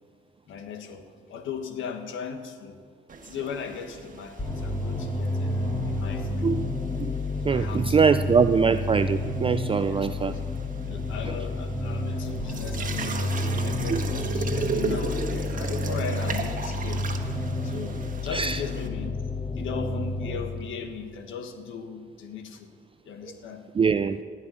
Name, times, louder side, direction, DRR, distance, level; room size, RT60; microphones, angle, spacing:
voice 1, 0.5-2.8 3.2-5.5 5.8-6.5 7.5-8.0 9.9-10.4 10.9-17.1 17.6-19.2 19.5-22.7 23.0-23.6, left 6 dB, 75° left, 5 dB, 1.5 m, -37 dB
sound 1, 3.1-18.9, right 5 dB, 45° right, 1.4 m, -37 dB
sound 2, 4.4-20.4, left 2 dB, 20° left, 2.0 m, -30 dB
voice 2, 7.4-10.3 11.3-11.4 13.9-14.0 18.3-18.6 23.7-24.2, right 5 dB, 25° right, 11 dB, 0.4 m, -23 dB
17.0 x 5.6 x 9.5 m, 2.1 s
cardioid pair, 90°, 20 cm